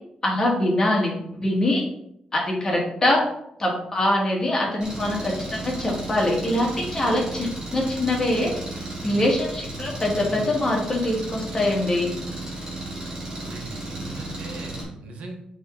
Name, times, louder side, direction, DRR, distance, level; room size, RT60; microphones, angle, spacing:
voice 1, 0.2-1.1 1.4-1.8 2.3-3.2 3.6-8.5 9.0-12.1, left 1 dB, 25° left, -2 dB, 1.9 m, -23 dB
Engine, 4.8-14.8, right 2 dB, 35° right, 2.4 m, -34 dB
voice 2, 13.3-15.4, right 2 dB, 90° right, 2 dB, 1.3 m, -39 dB
8.1 x 3.7 x 3.8 m, 0.77 s
wide cardioid pair, 145°, 2 cm